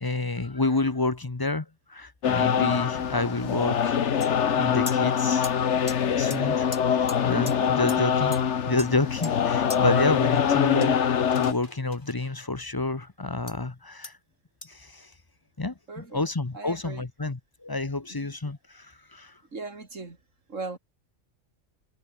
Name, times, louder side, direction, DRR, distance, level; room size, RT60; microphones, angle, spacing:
voice 1, 0.0-5.5 6.2-8.3 8.7-14.2 14.6-15.1 15.6-19.4, left 3 dB, 20° left, 0.9 m, -29 dB
sound 1, 2.2-11.5, left 8 dB, 65° left, 1.4 m, -24 dB
sound 2, 4.2-4.3 4.9-5.0 5.4-5.5 5.9-6.0 6.3-6.4 6.7-6.8 7.1-7.2 7.5-7.6 7.9-8.0 8.3-8.4 8.8-9.3 9.7-9.8 10.8-12.2 13.5-13.6 14.0-14.1 14.6-14.7, left 2 dB, 40° left, 3.3 m, -39 dB
voice 2, 15.9-16.2 16.5-17.1 18.1-18.3 19.5-20.2 20.5-20.8, right 3 dB, 85° right, 3.5 m, -38 dB
omnidirectional pair, 1.3 m